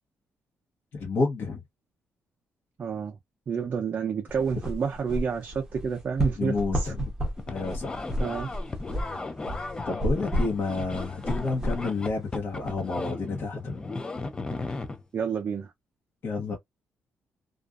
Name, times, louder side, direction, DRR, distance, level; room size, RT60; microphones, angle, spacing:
voice 1, 0.9-1.6 6.4-7.1 7.5-8.0 9.8-13.8 16.2-16.6, left 3 dB, 50° left, 1.0 m, -30 dB
voice 2, 2.8-3.2 3.5-6.9 8.2-8.5 15.1-15.7, right 6 dB, 40° right, 0.5 m, -29 dB
sound 1, 4.3-12.8, equal, 10° right, 0.9 m, -33 dB
sound 2, 7.4-15.0, left 3 dB, 20° left, 0.3 m, -36 dB
2.5 x 2.4 x 2.3 m
cardioid pair, 155°, 5 cm